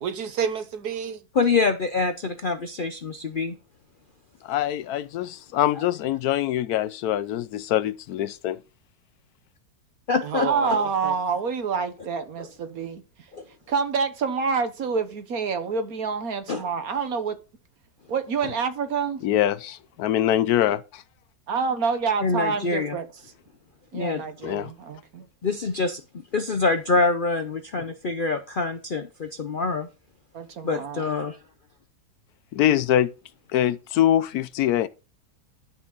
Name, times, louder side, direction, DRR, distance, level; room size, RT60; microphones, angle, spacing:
voice 1, 0.0-1.2 10.2-11.2, right 7 dB, 85° right, 1.7 m, -30 dB
voice 2, 1.3-3.6 5.7-5.8 10.1-10.9 12.4-12.5 13.3-13.4 16.5-16.7 22.2-23.0 23.9-24.2 25.4-29.9 30.6-31.3, left 3 dB, 55° left, 0.5 m, -25 dB
voice 3, 4.4-8.6 19.2-21.0 24.4-24.7 32.5-33.1 33.5-34.9, left 12 dB, 75° left, 1.1 m, -24 dB
voice 4, 10.5-13.0 13.7-17.4 18.1-19.2 21.5-23.1 23.9-25.3 30.3-31.1, right 5 dB, 65° right, 1.6 m, -27 dB
11.0 x 6.1 x 4.0 m
omnidirectional pair, 1.7 m